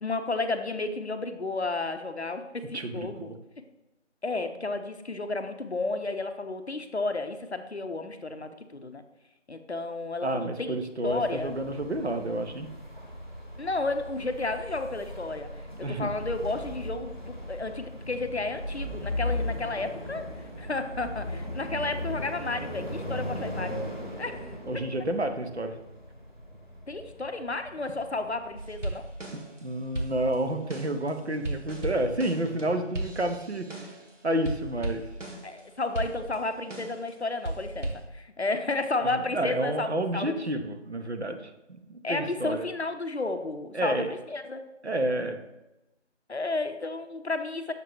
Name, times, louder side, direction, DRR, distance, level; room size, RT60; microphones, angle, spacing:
voice 1, 0.0-3.3 4.2-9.0 9.5-11.5 13.6-15.5 15.8-20.3 20.6-23.8 24.2-24.4 24.7-24.9 26.9-29.1 35.4-40.4 42.0-44.6 46.3-47.7, left 3 dB, 65° left, 8 dB, 0.6 m, -32 dB
voice 2, 2.7-3.3 10.2-12.7 15.8-16.1 24.7-25.7 29.6-33.9 34.2-35.1 39.0-42.7 43.7-44.1 44.8-45.4, right 1 dB, 65° right, 7 dB, 0.7 m, -30 dB
sound 1, 11.0-28.8, left 1 dB, 40° left, 0.9 m, -38 dB
sound 2, 28.6-29.6 29.9-34.1 34.4-35.6 35.9-37.1 37.4-38.0, right 1 dB, 80° right, 1.5 m, -36 dB
6.6 x 3.0 x 4.7 m, 0.96 s
figure-of-eight pair, 180°, 36 cm